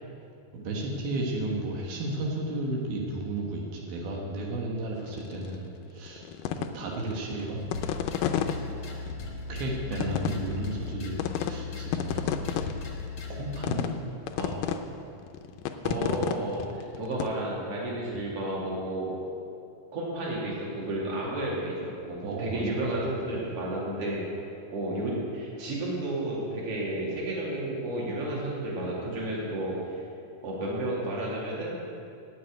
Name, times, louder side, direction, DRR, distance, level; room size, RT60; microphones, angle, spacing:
voice 1, 0.5-6.3 6.5-7.6 9.5-12.6 13.3-13.9 16.0-16.2 22.2-22.8, right 2 dB, 80° right, -2 dB, 3.2 m, -33 dB
sound 1, 5.1-5.6 6.0-8.6 9.1-9.2 9.6-9.7 10.0-10.9 11.2-11.5 11.8-13.1 13.6-14.0 14.3-14.8 15.2-17.3, left 10 dB, 80° left, 2.1 m, -30 dB
sound 2, 7.6-13.7, left 5 dB, 45° left, 1.4 m, -37 dB
voice 2, 14.4-14.7 15.8-19.2 19.9-24.3 24.7-30.1 30.4-31.8, right 1 dB, 40° right, -5 dB, 3.2 m, -32 dB
9.4 x 8.4 x 9.3 m, 2.5 s
omnidirectional pair, 4.3 m